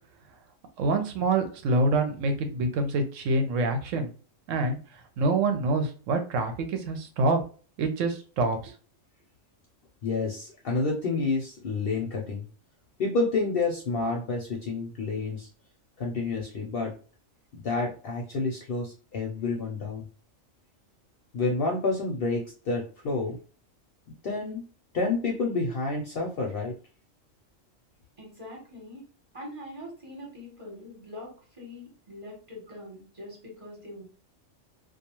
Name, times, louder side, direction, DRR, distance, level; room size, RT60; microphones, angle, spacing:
voice 1, 0.8-4.1 4.5-4.8 5.2-7.4 7.8-8.7, right 2 dB, 75° right, 6 dB, 0.9 m, -26 dB
voice 2, 10.0-12.5 13.0-15.5 16.0-16.9 17.5-20.0 21.3-23.4 24.2-24.6 24.9-26.7, left 3 dB, 60° left, -1 dB, 0.7 m, -29 dB
voice 3, 28.2-29.0 29.3-34.0, left 1 dB, 25° right, -2 dB, 1.0 m, -43 dB
2.3 x 2.3 x 2.9 m, 0.38 s
omnidirectional pair, 1.4 m